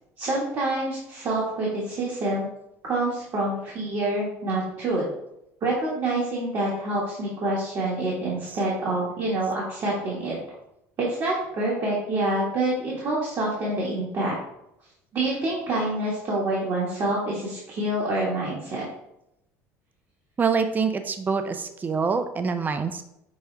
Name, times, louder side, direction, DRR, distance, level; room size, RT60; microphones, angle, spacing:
voice 1, 0.2-2.5 2.8-5.0 5.6-10.3 11.0-14.3 15.1-18.8, right 2 dB, 45° right, -5 dB, 1.4 m, -27 dB
voice 2, 20.4-23.0, right 5 dB, 20° right, 8 dB, 0.4 m, -25 dB
6.1 x 2.3 x 3.3 m, 0.82 s
supercardioid pair, 90°, 8 cm